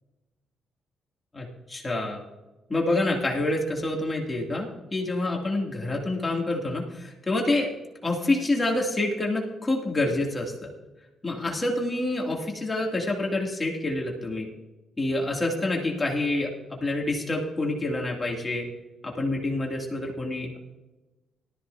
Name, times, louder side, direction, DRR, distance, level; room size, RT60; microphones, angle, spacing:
voice 1, 1.3-2.2 2.7-7.7 8.0-10.7 11.2-14.5 15.0-18.7 19.0-20.6, left 2 dB, 20° left, -1 dB, 2.5 m, -27 dB
18.0 x 13.5 x 2.7 m, 1.1 s
cardioid pair, 90°, 0 cm